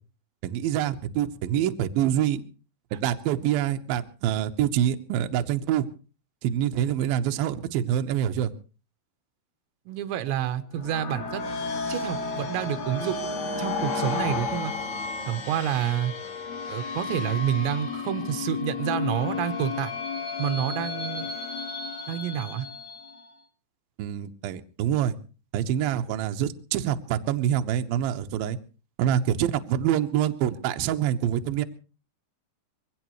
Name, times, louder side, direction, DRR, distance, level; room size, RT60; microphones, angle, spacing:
voice 1, 0.4-2.4 2.9-5.9 6.4-8.5 24.0-25.2 25.5-28.6 29.0-31.6, right 10 dB, 70° right, 7 dB, 2.5 m, -26 dB
voice 2, 9.9-11.4 11.9-13.2 13.6-14.7 15.3-16.1 16.7-19.9 20.4-21.3 22.1-22.7, right 10 dB, 90° right, 10 dB, 3.3 m, -28 dB
sound 1, 10.7-23.3, left 4 dB, 50° left, 3.0 m, -32 dB
23.0 x 17.5 x 3.1 m, 0.35 s
omnidirectional pair, 5.0 m